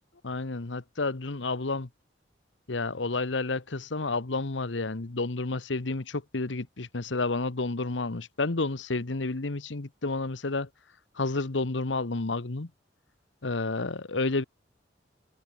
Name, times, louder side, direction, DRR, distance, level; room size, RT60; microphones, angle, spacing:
voice 1, 0.2-1.9 2.7-10.7 11.2-12.7 13.4-14.4, left 3 dB, 75° left, 1.2 m, -30 dB
head